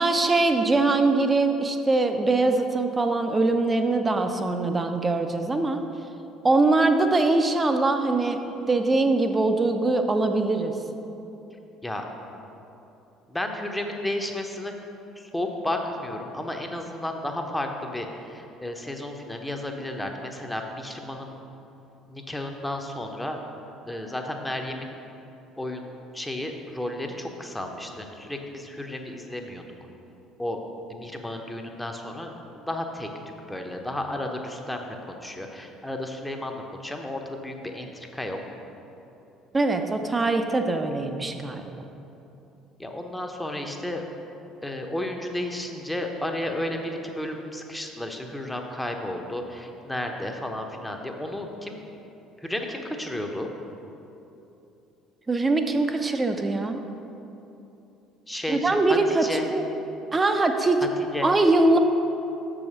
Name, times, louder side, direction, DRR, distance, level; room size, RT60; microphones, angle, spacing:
voice 1, 0.0-5.8 6.4-8.4 8.7-10.7 39.5-41.9 55.3-56.8 58.5-59.2 59.5-59.6 60.1-60.8 61.2-61.8, right 2 dB, 20° right, 6 dB, 0.7 m, -22 dB
voice 2, 13.3-14.7 15.2-21.3 22.1-23.4 23.8-25.0 25.6-29.6 30.4-30.6 30.9-33.1 33.5-38.6 42.8-44.0 44.6-51.8 52.4-53.5 58.3-59.5 61.1-61.3, left 1 dB, 10° left, 3 dB, 0.9 m, -33 dB
6.9 x 4.9 x 6.5 m, 2.9 s
figure-of-eight pair, 55°, 0 cm